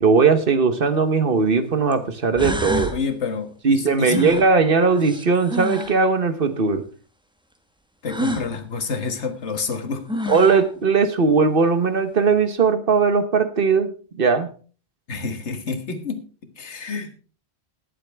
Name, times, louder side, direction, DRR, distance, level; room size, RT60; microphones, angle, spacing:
voice 1, 0.0-2.9 3.6-6.8 10.3-14.5, right 4 dB, 55° right, 11 dB, 1.3 m, -19 dB
sound 1, 0.9-1.0 1.9-2.0 2.4-3.0 4.1-6.0 8.1-8.5 9.7-9.8 10.1-10.7, equal, 5° right, 1.3 m, -28 dB
voice 2, 2.9-4.3 8.0-10.3 15.1-17.2, left 5 dB, 80° left, 8 dB, 1.8 m, -28 dB
20.5 x 7.6 x 3.4 m, 0.38 s
omnidirectional pair, 1.1 m